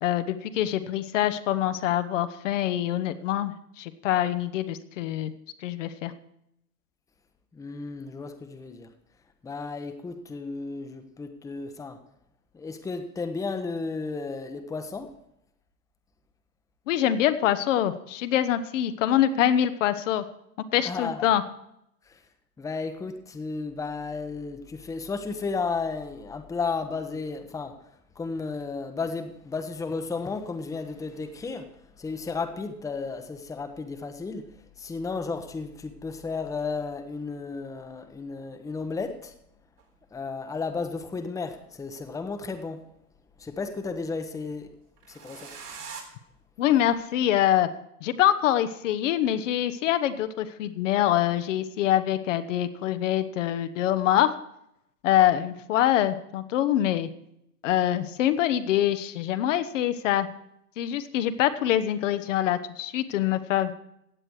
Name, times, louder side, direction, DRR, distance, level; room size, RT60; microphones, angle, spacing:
voice 1, 0.0-5.3 5.6-6.1 16.9-20.2 20.7-21.4 46.6-47.7 48.0-54.4 55.0-57.1 57.6-60.3 60.8-63.7, left 11 dB, 50° left, 10 dB, 1.0 m, -25 dB
voice 2, 7.5-8.9 9.4-12.0 12.5-15.1 20.8-21.3 22.1-22.2 22.6-34.5 34.8-39.3 40.1-42.8 43.4-44.7 45.1-45.5, left 4 dB, 5° left, 7 dB, 0.9 m, -33 dB
sound 1, 39.8-39.9 41.1-42.2 45.0-46.0, right 6 dB, 75° right, 3.7 m, -43 dB
16.0 x 8.9 x 4.8 m, 0.78 s
hypercardioid pair, 105°, 47 cm